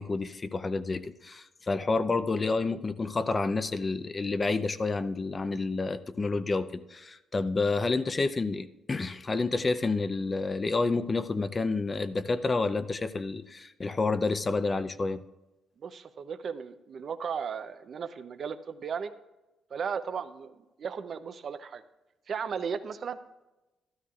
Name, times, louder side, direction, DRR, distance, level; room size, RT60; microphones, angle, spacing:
voice 1, 0.0-15.2, left 3 dB, 30° left, 12 dB, 0.6 m, -29 dB
voice 2, 15.8-19.1 19.7-21.8 22.3-23.2, right 6 dB, 55° right, 9 dB, 0.7 m, -35 dB
13.0 x 12.5 x 2.4 m, 1.0 s
cardioid pair, 90°, 0 cm